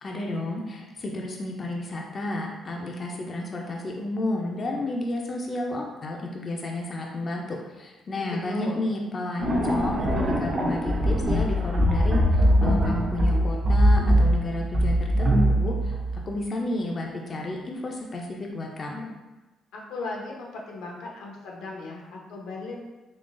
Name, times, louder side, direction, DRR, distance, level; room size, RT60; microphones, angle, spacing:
voice 1, 0.0-15.9 16.3-19.1, left 1 dB, 35° left, 0 dB, 0.4 m, -32 dB
voice 2, 8.2-8.8 19.7-22.8, left 3 dB, 85° left, -1 dB, 0.8 m, -37 dB
sound 1, 9.4-16.3, equal, 40° right, 0.6 m, -22 dB
3.7 x 3.3 x 2.5 m, 1.1 s
cardioid pair, 125°, 0 cm